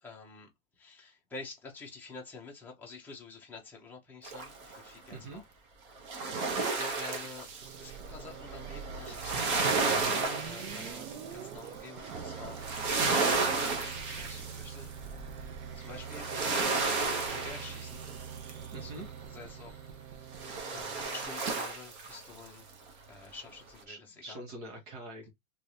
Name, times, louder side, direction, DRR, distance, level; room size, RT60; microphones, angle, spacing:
voice 1, 0.0-5.4 6.0-7.5 7.8-11.1 11.3-12.9 13.5-14.9 15.5-18.1 18.8-19.8 20.7-22.7 23.1-24.4, left 4 dB, 5° left, 0.6 m, -49 dB
sound 1, 4.2-4.9 6.0-18.8 20.4-22.5 22.9-23.0, right 4 dB, 40° right, 0.9 m, -33 dB
voice 2, 5.1-5.4 18.7-19.1 23.9-25.3, right 2 dB, 60° right, 1.6 m, -44 dB
sound 2, 7.6-21.3, right 7 dB, 90° right, 0.7 m, -45 dB
3.2 x 3.0 x 2.7 m
supercardioid pair, 160°, 41 cm